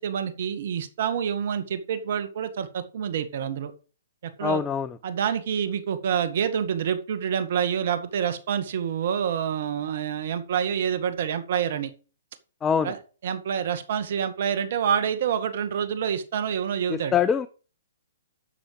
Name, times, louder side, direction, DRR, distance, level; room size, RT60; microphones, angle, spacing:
voice 1, 0.0-3.7 4.2-4.6 5.0-11.9 12.8-17.2, right 8 dB, 55° right, 2.2 m, -27 dB
voice 2, 4.4-5.0 12.6-12.9 16.9-17.5, left 7 dB, 15° left, 0.7 m, -24 dB
12.0 x 7.1 x 5.0 m
hypercardioid pair, 130°, 0 cm